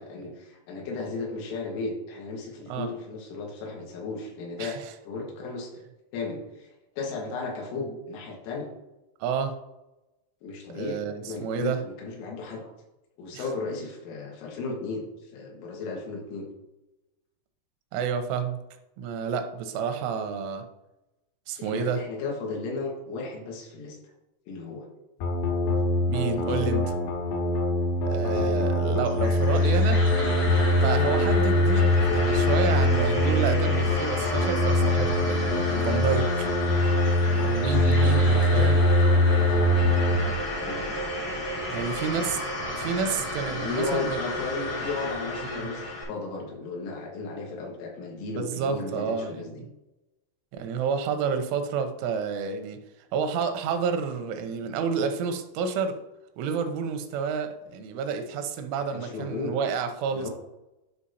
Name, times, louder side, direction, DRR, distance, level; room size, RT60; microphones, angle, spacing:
voice 1, 0.0-5.8 6.1-6.7 7.0-8.7 10.4-12.7 13.2-15.0 15.3-16.5 21.6-24.0 24.5-24.9 26.4-26.7 29.5-29.8 30.9-31.1 37.9-39.7 40.1-41.0 41.7-42.1 43.3-49.6 58.9-59.6 60.1-60.3, left 3 dB, 90° left, 0 dB, 4.0 m, -35 dB
voice 2, 4.6-4.9 9.2-9.6 10.7-11.8 13.3-13.4 17.9-18.6 19.0-20.6 21.5-22.0 26.1-26.8 28.1-30.0 30.8-36.5 37.3-38.8 41.7-44.2 45.4-45.7 48.2-49.4 50.5-52.8 53.1-56.0 56.4-60.3, right 6 dB, 85° right, 7 dB, 3.1 m, -30 dB
sound 1, 25.2-40.2, left 1 dB, 70° left, 2.9 m, -23 dB
sound 2, 29.0-46.0, left 1 dB, 45° left, 1.1 m, -32 dB
11.5 x 5.0 x 2.8 m, 0.96 s
omnidirectional pair, 5.6 m